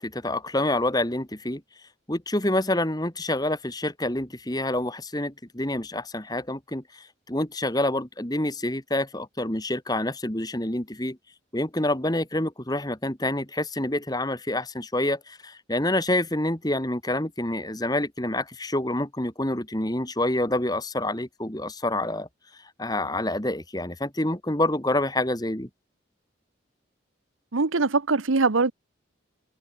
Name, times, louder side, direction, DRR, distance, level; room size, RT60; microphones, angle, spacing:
voice 1, 0.0-1.6 2.1-11.2 11.5-22.3 22.8-25.7, left 1 dB, 20° left, 2.1 m, -27 dB
voice 2, 27.5-28.7, right 3 dB, 85° right, 1.0 m, -22 dB
open air
head